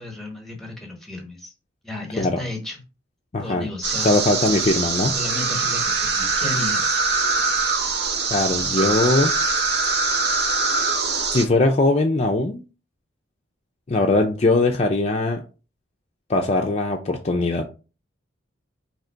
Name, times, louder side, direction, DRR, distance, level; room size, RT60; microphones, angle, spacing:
voice 1, 0.0-1.5 1.8-2.8 3.4-4.6 5.1-7.0, left 2 dB, ahead, 3 dB, 1.0 m, -33 dB
voice 2, 3.3-3.7 4.0-5.2 8.3-9.4 11.3-12.6 13.9-15.4 16.3-17.7, left 2 dB, 35° left, 2 dB, 0.4 m, -20 dB
sound 1, 3.8-11.4, right 4 dB, 55° right, 0.7 m, -23 dB
3.8 x 2.9 x 4.4 m, 0.33 s
head